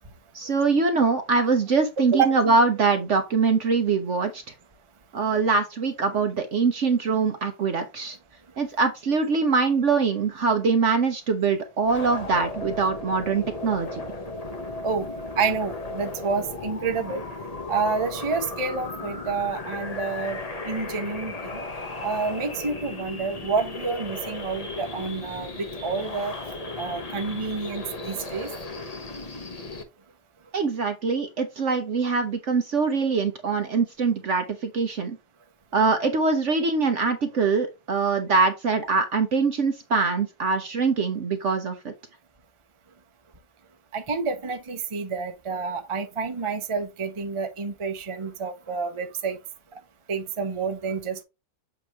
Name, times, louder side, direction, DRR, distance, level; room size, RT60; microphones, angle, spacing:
voice 1, 0.3-4.4 5.1-8.2 8.6-14.0 30.5-35.2 35.7-41.9, right 4 dB, 55° right, 1.0 m, -23 dB
sound 1, 11.8-29.8, left 2 dB, 30° left, 0.9 m, -35 dB
voice 2, 15.4-17.2 17.7-20.4 20.6-21.6 22.0-26.3 26.8-28.5 43.9-49.4 50.1-51.2, right 5 dB, 25° right, 0.8 m, -28 dB
7.8 x 3.0 x 4.6 m
omnidirectional pair, 1.8 m